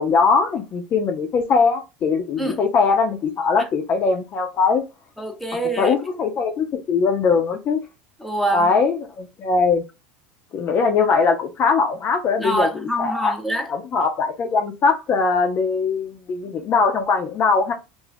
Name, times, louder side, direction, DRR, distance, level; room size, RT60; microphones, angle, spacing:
voice 1, 0.0-4.8 5.8-7.8 8.5-9.8 10.5-12.7 13.0-13.3 13.7-17.7, left 4 dB, 40° left, 0.5 m, -20 dB
voice 2, 5.2-5.9 8.2-8.7 12.4-13.7, right 1 dB, ahead, 0.7 m, -25 dB
2.5 x 2.3 x 3.3 m
hypercardioid pair, 85°, 6 cm